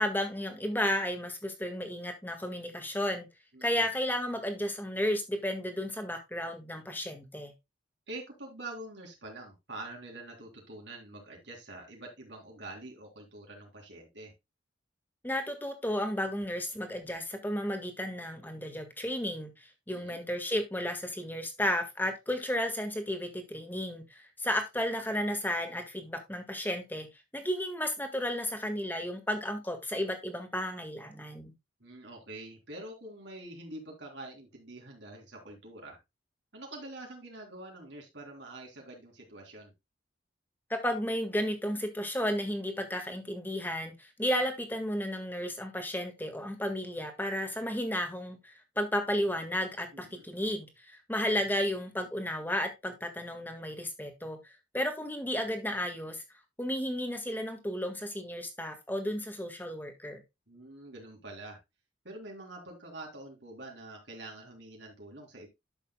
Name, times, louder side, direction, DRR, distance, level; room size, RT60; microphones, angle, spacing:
voice 1, 0.0-3.3 3.6-7.5 15.2-27.1 27.3-31.5 40.7-56.2 56.6-60.2, left 1 dB, 10° left, 1.7 m, -33 dB
voice 2, 3.5-3.9 8.1-14.3 19.9-20.2 31.8-36.0 36.5-39.7 49.9-50.3 60.5-61.6 62.0-65.5, right 2 dB, 70° right, 3.3 m, -46 dB
11.5 x 7.1 x 2.2 m
head